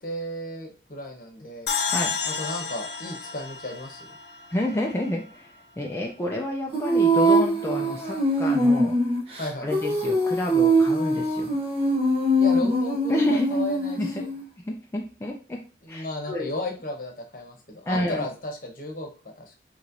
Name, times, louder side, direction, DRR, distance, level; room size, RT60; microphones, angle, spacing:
voice 1, 0.0-1.7 2.2-4.1 9.4-9.7 12.4-14.3 15.8-19.1 19.4-19.5, left 1 dB, 50° left, 2 dB, 0.9 m, -34 dB
sound 1, 1.7-5.0, left 6 dB, 70° left, 0.6 m, -31 dB
voice 2, 4.5-5.5 5.8-8.9 9.6-11.5 13.1-13.5 14.0-14.1 14.7-15.6 15.9-16.5 17.9-18.3, left 1 dB, 15° left, -1 dB, 0.4 m, -29 dB
Female singing, 6.7-14.4, right 1 dB, 35° right, 0.8 m, -22 dB
4.3 x 3.0 x 2.5 m, 0.36 s
head